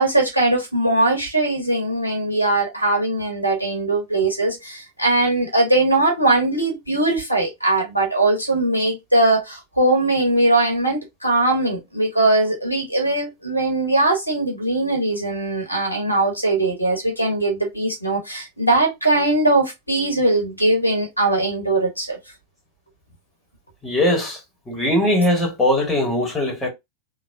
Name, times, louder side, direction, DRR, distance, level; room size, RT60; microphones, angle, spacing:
voice 1, 0.0-22.2, right 2 dB, 90° left, 1.2 m, -20 dB
voice 2, 23.8-24.4 24.7-26.7, left 1 dB, 10° left, 1.5 m, -20 dB
3.2 x 2.3 x 3.6 m
figure-of-eight pair, 90°, 0 cm